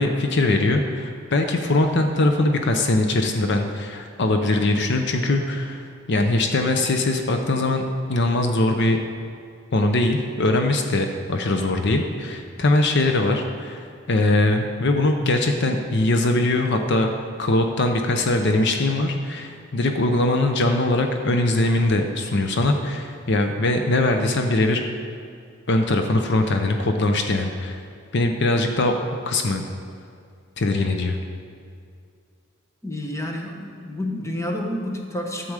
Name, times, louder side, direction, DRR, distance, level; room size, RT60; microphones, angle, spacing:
voice 1, 0.0-9.0 9.7-17.1 17.4-24.8 25.7-27.8 28.1-28.9 29.3-29.6 30.6-31.2, left 2 dB, 60° left, 5 dB, 0.7 m, -21 dB
voice 2, 32.8-35.5, left 1 dB, 15° left, 1 dB, 1.1 m, -29 dB
12.0 x 7.7 x 4.9 m, 2.3 s
head